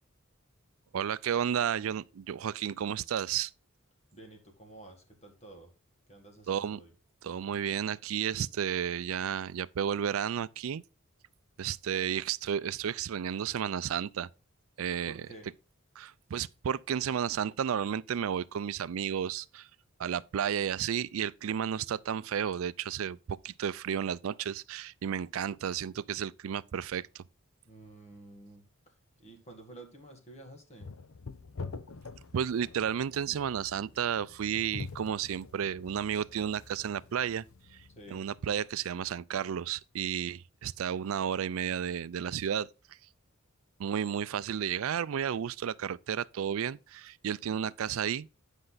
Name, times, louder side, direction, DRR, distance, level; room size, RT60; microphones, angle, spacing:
voice 1, 0.9-3.5 6.5-6.8 7.2-10.8 11.6-14.3 14.8-15.2 16.0-19.7 20.0-27.2 32.3-37.4 38.1-42.7 43.8-48.3, right 8 dB, 70° right, 0.4 m, -32 dB
voice 2, 4.1-5.7 6.1-6.9 15.1-15.5 27.6-28.7 29.2-30.9 38.0-38.2, right 2 dB, 30° left, 2.0 m, -51 dB
sound 1, 30.8-38.6, left 4 dB, 75° left, 0.7 m, -46 dB
10.0 x 5.3 x 4.0 m
head